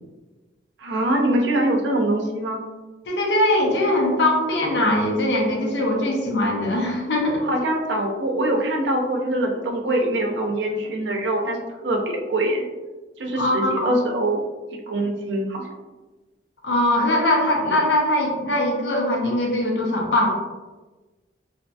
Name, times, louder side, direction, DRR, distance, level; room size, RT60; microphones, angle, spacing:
voice 1, 0.8-2.6 7.4-12.6 13.2-14.4 14.9-15.6, right 1 dB, 90° right, 1 dB, 0.5 m, -23 dB
voice 2, 3.1-7.5 13.4-14.0 16.6-20.3, left 1 dB, 75° left, -1 dB, 0.6 m, -21 dB
2.7 x 2.5 x 2.2 m, 1.2 s
head